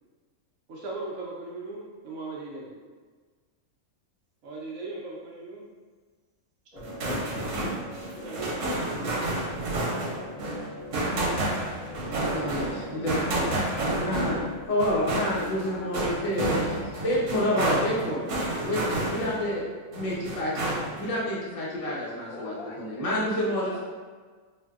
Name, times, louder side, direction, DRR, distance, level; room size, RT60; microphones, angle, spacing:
voice 1, 0.7-2.7 4.4-5.6 8.2-9.6, right 2 dB, 70° right, -4 dB, 0.9 m, -39 dB
sound 1, 6.7-14.7, left 1 dB, 35° right, 0.9 m, -43 dB
sound 2, 6.8-19.5 19.9-21.1, right 1 dB, 85° right, 1.2 m, -30 dB
voice 2, 12.3-18.2 18.6-19.6 19.9-20.7 21.0-23.8, left 1 dB, 45° left, -6 dB, 0.5 m, -29 dB
voice 3, 15.3-16.0 22.3-23.8, left 3 dB, 75° left, -1 dB, 1.0 m, -43 dB
3.5 x 2.5 x 2.3 m, 1.5 s
omnidirectional pair, 1.6 m